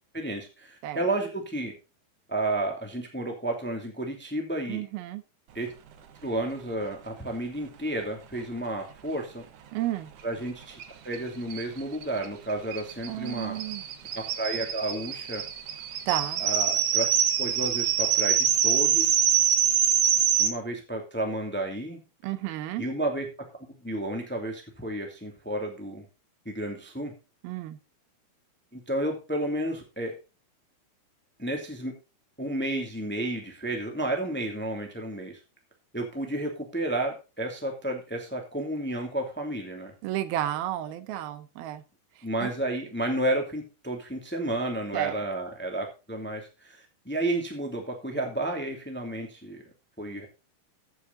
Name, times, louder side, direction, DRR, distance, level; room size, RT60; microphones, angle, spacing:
voice 1, 0.1-1.7 2.3-4.8 5.5-5.7 6.2-9.4 10.2-10.8 11.0-13.6 14.1-15.4 16.4-17.1 17.4-19.2 20.4-22.0 22.8-23.3 23.6-26.1 26.4-27.1 28.7-30.2 31.4-31.9 32.4-35.4 35.9-39.9 42.2-49.6 50.0-50.3, right 1 dB, 5° left, 2 dB, 1.7 m, -31 dB
voice 2, 4.7-5.2 9.7-10.1 13.1-13.8 16.1-16.4 22.2-22.9 27.4-27.8 40.0-41.8 42.2-42.5 44.9-45.2, right 13 dB, 80° right, 13 dB, 2.6 m, -32 dB
sound 1, 10.8-10.9 11.1-11.2 11.5-20.5, right 8 dB, 65° right, 2.4 m, -25 dB
14.5 x 8.5 x 4.0 m, 0.30 s
omnidirectional pair, 4.5 m